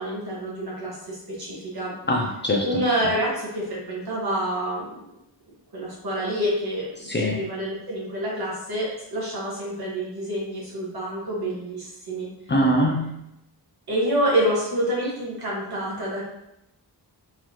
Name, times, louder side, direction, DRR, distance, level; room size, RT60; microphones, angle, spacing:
voice 1, 0.0-1.9 2.6-4.9 5.7-6.9 7.2-12.3 13.9-16.2, right 1 dB, 65° right, -5 dB, 1.5 m, -27 dB
voice 2, 2.1-2.8 7.1-7.4 12.5-13.2, equal, 30° left, 0 dB, 0.4 m, -22 dB
3.7 x 3.3 x 2.9 m, 0.85 s
wide cardioid pair, 180°, 41 cm